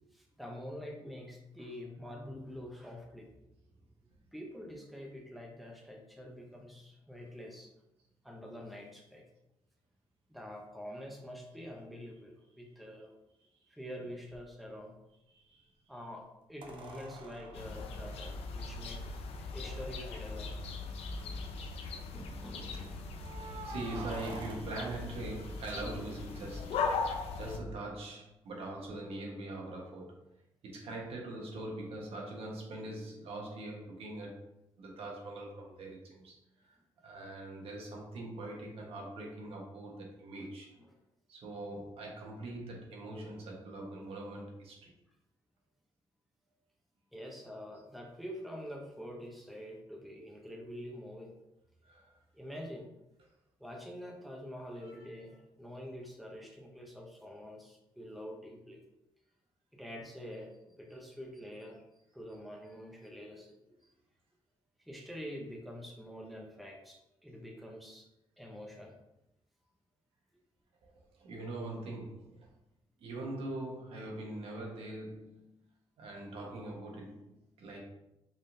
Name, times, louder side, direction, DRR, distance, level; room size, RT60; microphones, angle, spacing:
voice 1, 0.1-3.3 4.3-7.7 8.2-9.2 10.3-13.1 13.7-15.0 15.9-19.0 19.3-20.6 22.0-23.3 40.4-40.5 40.8-40.9 47.1-51.3 52.3-52.9 53.6-58.8 59.7-63.9 64.8-68.1 68.4-69.0, equal, ahead, 0 dB, 0.7 m, -46 dB
sound 1, 14.3-14.4 16.6-19.0 20.0-20.1 20.3-20.4 21.0-21.5 23.2-26.3 28.8-28.9, right 3 dB, 55° right, 0.7 m, -48 dB
voice 2, 15.3-15.7 23.4-26.9 27.3-30.2 30.6-34.4 34.8-36.4 36.6-36.8 37.0-40.7 41.3-44.9 51.8-52.2 54.8-55.1 70.8-72.5 73.0-75.5 76.0-77.8, right 2 dB, 75° right, -1 dB, 1.2 m, -42 dB
sound 2, 17.5-27.6, left 4 dB, 80° left, 0.5 m, -39 dB
5.3 x 3.6 x 2.6 m, 0.90 s
cardioid pair, 135°, 10 cm